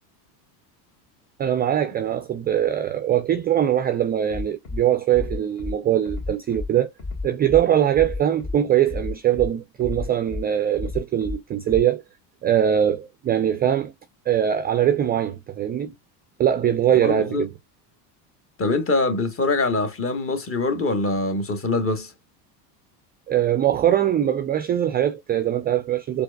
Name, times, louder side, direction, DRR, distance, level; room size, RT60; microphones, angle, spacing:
voice 1, 1.4-6.9 7.2-12.0 12.4-13.9 14.3-15.9 16.4-17.5 23.3-26.2, right 10 dB, 20° right, 0.3 m, -22 dB
Bass drum, 4.3-4.8 5.1-5.7 6.1-6.7 7.0-7.6 7.9-8.5 8.9-9.5 9.8-10.4 10.7-11.4 11.7-11.8, left 3 dB, 40° left, 1.9 m, -31 dB
voice 2, 17.0-17.5 18.6-22.1, left 3 dB, 25° left, 1.2 m, -24 dB
4.4 x 2.6 x 2.2 m
hypercardioid pair, 85°, 48 cm